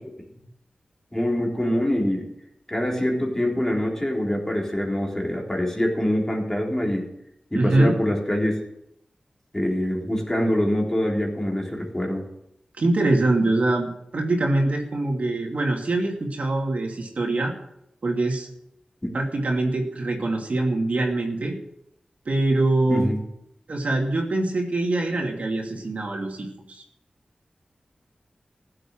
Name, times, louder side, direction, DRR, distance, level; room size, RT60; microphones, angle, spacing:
voice 1, 1.1-2.3 2.7-7.1 7.5-8.6 9.5-12.3 19.0-19.1 22.9-23.2, left 1 dB, 15° left, -1 dB, 3.7 m, -24 dB
voice 2, 7.5-7.9 12.8-17.5 18.0-18.5 19.1-21.6 22.3-23.1 23.7-26.8, right 2 dB, 70° right, 1 dB, 2.7 m, -23 dB
15.0 x 7.8 x 7.5 m, 0.78 s
wide cardioid pair, 75°, 3 cm